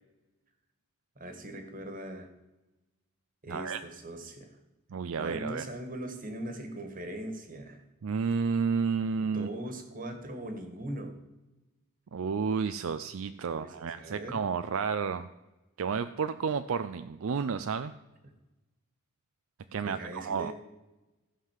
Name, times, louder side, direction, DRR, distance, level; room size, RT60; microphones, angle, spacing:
voice 1, 1.1-2.3 3.4-4.6 5.2-7.8 9.3-11.2 13.5-14.4 19.8-20.5, right 1 dB, 40° right, 7 dB, 1.7 m, -40 dB
voice 2, 3.5-3.8 4.9-5.6 8.0-9.5 12.1-15.3 15.8-17.9 19.7-20.5, right 5 dB, 70° right, 11 dB, 0.4 m, -31 dB
15.0 x 5.6 x 7.4 m, 1.0 s
head